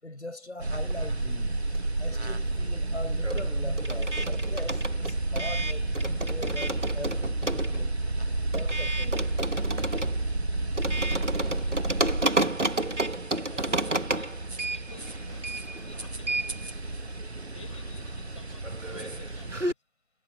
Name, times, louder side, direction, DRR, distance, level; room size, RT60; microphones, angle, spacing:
voice 1, 0.0-1.6 2.0-7.9 8.5-9.4, left 2 dB, 70° left, 7.2 m, -41 dB
sound 1, 0.6-19.7, right 2 dB, 60° right, 1.8 m, -31 dB
sound 2, 0.9-2.2 2.4-19.7, right 2 dB, 85° right, 2.4 m, -32 dB
voice 2, 11.0-11.5 11.9-12.9 13.5-16.8 17.4-19.8, left 4 dB, 25° left, 6.4 m, -53 dB
figure-of-eight pair, 165°, 36 cm